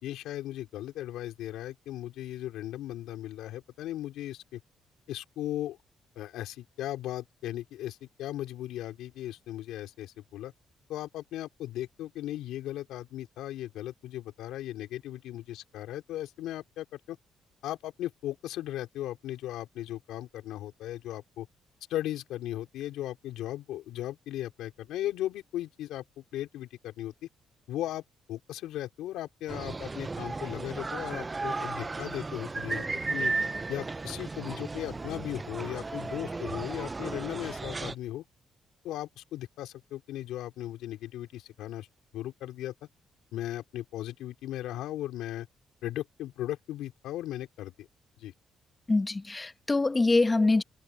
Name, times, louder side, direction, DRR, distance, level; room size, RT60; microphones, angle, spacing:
voice 1, 0.0-4.6 5.1-5.8 6.2-10.5 10.9-17.2 17.6-21.5 21.9-26.0 26.3-27.1 27.7-28.0 28.3-33.3 33.7-38.2 38.8-41.9 42.1-42.7 43.3-45.5 45.8-47.9 48.2-48.3, left 13 dB, 90° left, 4.5 m, -37 dB
sound 1, 29.5-37.9, right 3 dB, 25° right, 0.6 m, -35 dB
voice 2, 48.9-50.6, left 3 dB, 20° left, 1.5 m, -24 dB
cardioid pair, 90°, 0 cm